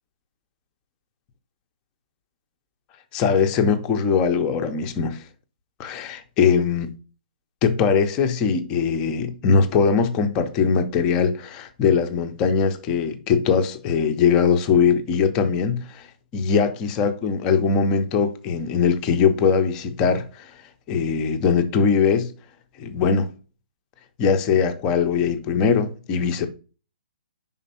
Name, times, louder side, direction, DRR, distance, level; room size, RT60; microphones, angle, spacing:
voice 1, 3.1-5.2 5.8-6.9 7.6-16.1 16.3-20.5 20.9-22.3 22.8-23.3 24.2-26.5, left 6 dB, 10° left, 0.4 m, -21 dB
5.1 x 3.6 x 5.5 m
hypercardioid pair, 175°, 6 cm